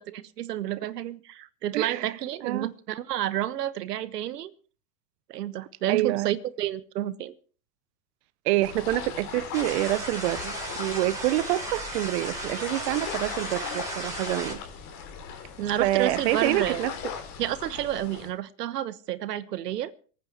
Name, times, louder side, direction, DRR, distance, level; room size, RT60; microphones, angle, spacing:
voice 1, 0.0-4.5 5.3-7.3 15.6-16.8 17.4-19.9, right 12 dB, 80° right, 1.3 m, -30 dB
voice 2, 1.7-2.1 2.4-2.7 5.9-6.3 8.4-14.6 15.8-16.9, right 17 dB, 45° right, 0.6 m, -27 dB
sound 1, 8.6-18.3, left 7 dB, 35° left, 3.5 m, -39 dB
sound 2, 9.5-14.5, right 2 dB, 5° right, 5.3 m, -35 dB
24.5 x 9.1 x 4.5 m
hypercardioid pair, 135°, 47 cm